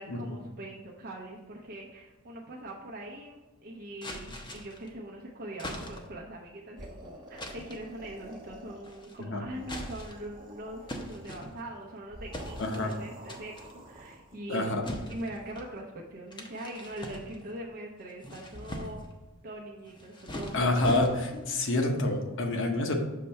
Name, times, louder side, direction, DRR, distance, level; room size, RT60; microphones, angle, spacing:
voice 1, 0.0-14.8 15.1-19.0 19.4-21.6, right 1 dB, 45° right, -2 dB, 0.7 m, -42 dB
sound 1, 4.0-4.9 5.6-6.2 7.4-7.9 8.8-9.2 9.6-10.3 10.9-11.9 12.3-13.0 13.3-13.7 14.8-15.7 16.3-17.6 18.1-19.1 19.9-21.5, equal, 20° left, 0.7 m, -41 dB
sound 2, 6.8-9.1 9.4-11.5 12.1-14.4, right 1 dB, 20° right, 1.0 m, -49 dB
voice 2, 12.6-12.9 14.5-14.8 20.5-22.9, left 2 dB, 60° left, 3 dB, 0.9 m, -28 dB
6.6 x 3.3 x 5.5 m, 1.2 s
head